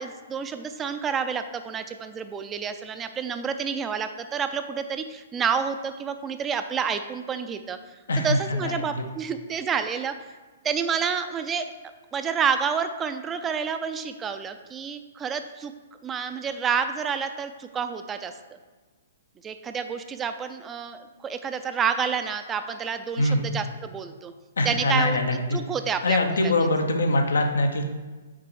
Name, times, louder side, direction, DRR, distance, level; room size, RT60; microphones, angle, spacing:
voice 1, 0.0-7.8 8.2-10.1 10.6-11.7 12.1-15.7 16.0-18.6 19.4-24.3 24.6-26.7, right 6 dB, 20° right, 9 dB, 0.4 m, -29 dB
voice 2, 8.1-9.0 23.2-23.4 24.6-25.6 26.0-27.8, left 1 dB, 90° left, 4 dB, 0.9 m, -23 dB
6.1 x 4.1 x 4.7 m, 1.3 s
hypercardioid pair, 135°, 0 cm